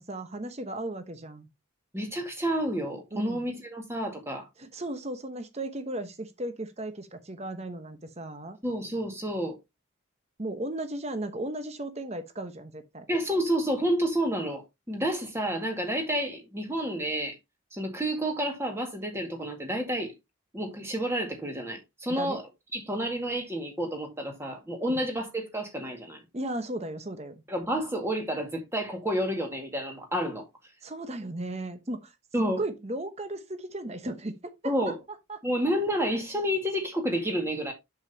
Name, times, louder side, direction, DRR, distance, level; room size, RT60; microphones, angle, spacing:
voice 1, 0.0-1.5 3.1-3.5 4.6-8.6 10.4-13.1 22.1-22.4 24.9-25.0 26.3-27.4 30.8-32.1 32.6-34.9 35.3-35.4, right 1 dB, 30° right, 1.0 m, -36 dB
voice 2, 1.9-4.4 8.6-9.6 13.1-17.4 17.7-20.1 20.5-22.4 22.7-26.2 27.5-30.4 32.3-32.6 34.6-35.0 35.4-37.7, equal, 10° right, 2.0 m, -30 dB
7.9 x 7.1 x 2.8 m
head